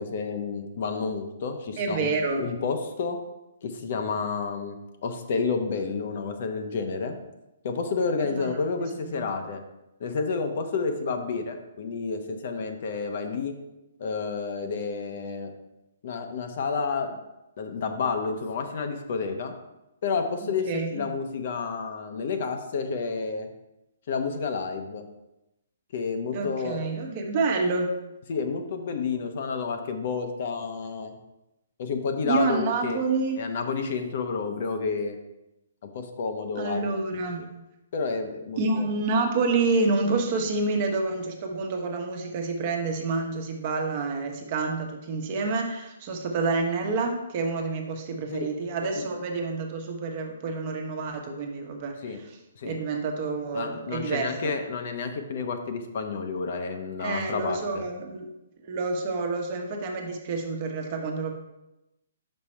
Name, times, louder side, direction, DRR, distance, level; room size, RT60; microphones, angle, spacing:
voice 1, 0.0-3.2 3.6-7.2 7.6-9.6 10.0-13.5 14.0-15.5 16.0-17.1 17.6-19.5 20.0-23.5 24.1-25.0 25.9-26.8 28.3-31.1 31.8-33.0 33.4-35.2 35.9-36.9 37.4-37.5 37.9-38.9 48.3-48.5 48.8-49.0 52.0-52.2 52.6-52.8 53.5-57.8, left 5 dB, 55° left, 6 dB, 0.9 m, -30 dB
voice 2, 1.8-2.5 8.2-8.5 20.7-20.9 26.3-28.0 32.2-33.4 36.6-37.4 38.6-51.9 52.6-54.5 57.0-58.3 58.7-61.3, right 3 dB, 40° right, 2 dB, 1.1 m, -28 dB
5.9 x 5.4 x 4.4 m, 0.93 s
hypercardioid pair, 150°, 0 cm